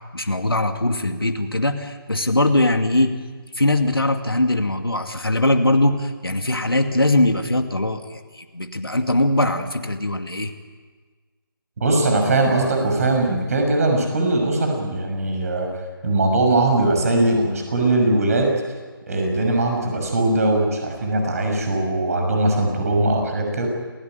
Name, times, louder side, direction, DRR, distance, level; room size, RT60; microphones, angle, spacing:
voice 1, 0.1-3.1 3.6-10.5, left 1 dB, 80° left, 6 dB, 2.4 m, -21 dB
voice 2, 11.8-15.7 16.0-18.5 19.1-23.7, right 2 dB, 40° right, 3 dB, 6.2 m, -20 dB
27.5 x 16.5 x 9.2 m, 1.4 s
figure-of-eight pair, 150°, 12 cm